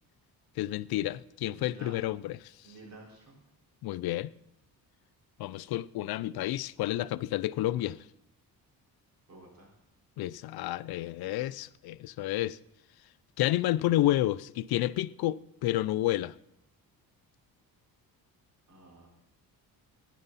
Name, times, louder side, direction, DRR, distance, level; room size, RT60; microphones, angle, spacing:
voice 1, 0.6-2.5 3.8-4.3 5.4-8.0 10.2-12.6 13.4-16.3, left 15 dB, 75° left, 0.5 m, -30 dB
voice 2, 1.5-2.0 2.6-3.4 9.3-9.7 18.7-19.1, right 2 dB, 45° right, 4.6 m, -50 dB
16.5 x 10.0 x 4.1 m
cardioid pair, 115°, 38 cm